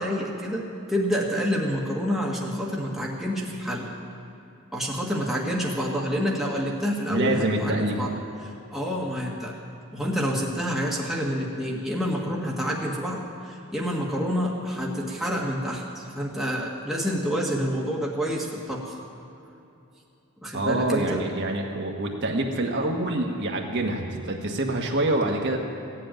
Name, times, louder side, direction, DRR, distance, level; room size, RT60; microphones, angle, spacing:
voice 1, 0.0-3.9 4.7-8.1 8.4-9.6 9.9-19.0 20.4-21.2, equal, ahead, -3 dB, 1.6 m, -28 dB
voice 2, 7.1-8.0 20.5-25.6, right 1 dB, 55° right, 1 dB, 1.5 m, -26 dB
16.0 x 7.8 x 9.1 m, 2.8 s
head